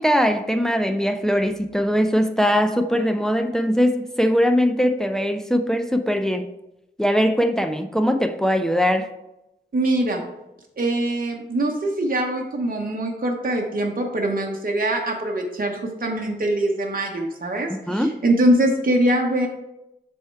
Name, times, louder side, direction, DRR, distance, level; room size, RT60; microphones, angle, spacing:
voice 1, 0.0-6.4 7.0-9.1 17.9-18.1, equal, 5° left, 7 dB, 0.5 m, -21 dB
voice 2, 9.7-10.2 10.8-19.5, right 1 dB, 50° right, 0 dB, 0.9 m, -23 dB
7.4 x 3.6 x 4.5 m, 0.89 s
wide cardioid pair, 100°, 19 cm